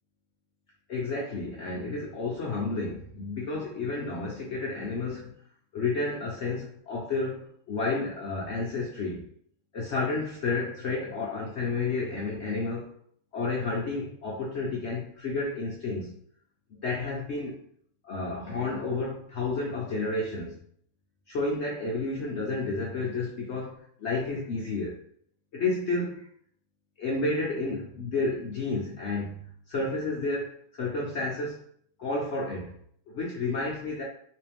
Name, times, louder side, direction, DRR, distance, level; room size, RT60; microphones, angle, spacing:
voice 1, 0.9-5.3 5.7-9.2 9.7-12.9 13.3-16.2 16.7-17.6 18.0-20.6 21.3-25.0 25.5-26.3 27.0-29.4 29.7-31.6 32.0-32.7 33.1-34.0, left 3 dB, 65° left, -3 dB, 0.7 m, -31 dB
3.4 x 3.1 x 3.4 m, 0.64 s
omnidirectional pair, 1.9 m